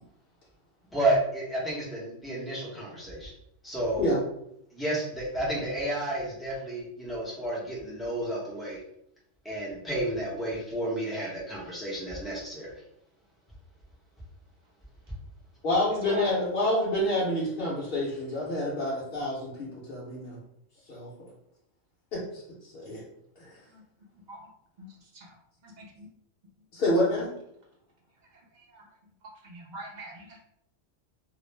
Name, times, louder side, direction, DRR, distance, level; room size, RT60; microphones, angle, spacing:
voice 1, 0.9-3.3 3.6-4.1 4.7-8.8 9.4-12.7, right 1 dB, ahead, -5 dB, 0.5 m, -31 dB
voice 2, 15.6-20.4 20.9-21.1 22.1-23.0 23.4-23.5 26.7-27.3, left 1 dB, 55° left, -7 dB, 0.8 m, -28 dB
voice 3, 24.8-25.3 25.6-26.1 28.5-28.8 29.4-30.4, right 3 dB, 55° right, -2 dB, 0.5 m, -42 dB
2.4 x 2.0 x 3.1 m, 0.76 s
omnidirectional pair, 1.3 m